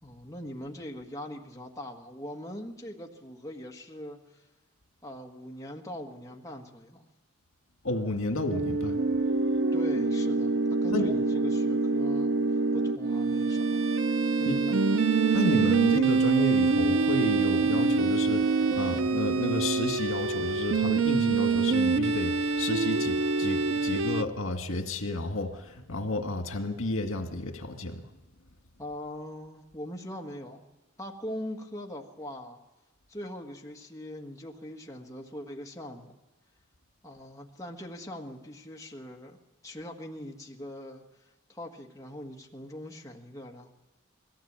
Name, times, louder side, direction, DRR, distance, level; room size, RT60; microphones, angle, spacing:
voice 1, 0.0-4.4 5.0-7.0 9.7-12.3 12.7-13.9 14.4-14.8 28.8-30.7 31.0-32.6 33.1-36.1 37.0-39.4 39.6-43.7, left 1 dB, 15° left, 0 dB, 1.6 m, -41 dB
voice 2, 7.8-9.0 10.9-11.1 14.5-14.6 15.3-28.0, left 2 dB, 85° left, 5 dB, 1.9 m, -31 dB
sound 1, 8.5-24.2, right 4 dB, 75° right, 0.7 m, -25 dB
21.0 x 16.0 x 8.8 m, 1.1 s
head